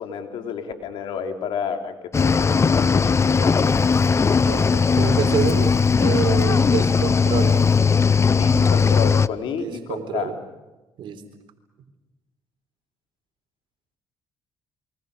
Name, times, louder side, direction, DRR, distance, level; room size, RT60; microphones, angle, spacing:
voice 1, 0.0-3.6 8.4-10.3, left 6 dB, 75° left, 5 dB, 3.5 m, -30 dB
Cricket / Waves surf, 2.1-9.3, left 5 dB, 30° left, 0.8 m, -18 dB
voice 2, 4.4-7.7 9.5-10.3 11.0-11.2, right 8 dB, 70° right, 7 dB, 3.9 m, -28 dB
29.0 x 23.5 x 6.8 m, 1.1 s
supercardioid pair, 75°, 9 cm